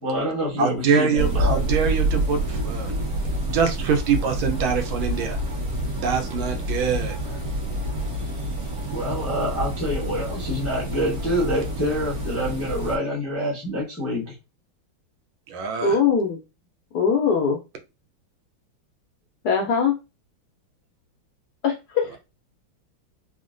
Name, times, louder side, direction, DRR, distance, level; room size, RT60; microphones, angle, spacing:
voice 1, 0.0-1.8 8.9-14.3, equal, 20° left, -5 dB, 0.3 m, -27 dB
voice 2, 0.6-2.9 3.4-5.4 6.0-7.2 15.5-16.0, right 6 dB, 80° right, 6 dB, 1.4 m, -24 dB
sound 1, 1.2-13.0, right 1 dB, 50° right, 1.5 m, -27 dB
voice 3, 15.8-16.4 16.9-17.6 19.4-19.9 21.6-22.2, left 6 dB, 75° left, 2 dB, 0.9 m, -21 dB
3.7 x 2.1 x 2.5 m, 0.26 s
omnidirectional pair, 2.2 m